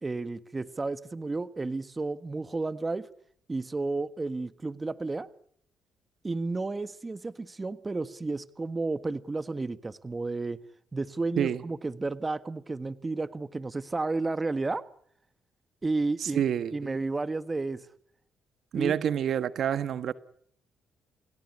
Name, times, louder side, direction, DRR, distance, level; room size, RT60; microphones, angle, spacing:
voice 1, 0.0-3.1 3.5-5.3 6.2-10.6 10.9-14.8 15.8-16.4 16.7-17.8 18.7-18.9, right 3 dB, 25° right, 1.4 m, -32 dB
voice 2, 16.2-17.0 18.7-20.1, right 9 dB, 65° right, 1.4 m, -28 dB
29.0 x 17.5 x 9.8 m
cardioid pair, 90°, 0 cm